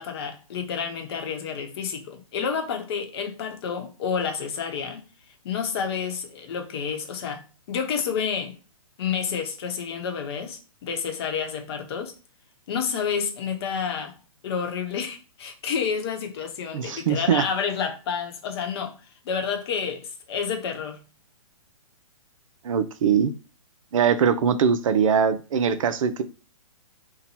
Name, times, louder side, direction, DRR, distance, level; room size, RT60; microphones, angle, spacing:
voice 1, 0.0-5.0 5.4-8.6 9.0-12.2 12.7-14.1 14.4-19.0 19.2-21.0, left 6 dB, 45° left, 0.8 m, -29 dB
voice 2, 16.7-17.4 22.6-23.3 23.9-26.2, right 7 dB, 65° right, 0.5 m, -22 dB
2.9 x 2.2 x 4.1 m
hypercardioid pair, 145°, 18 cm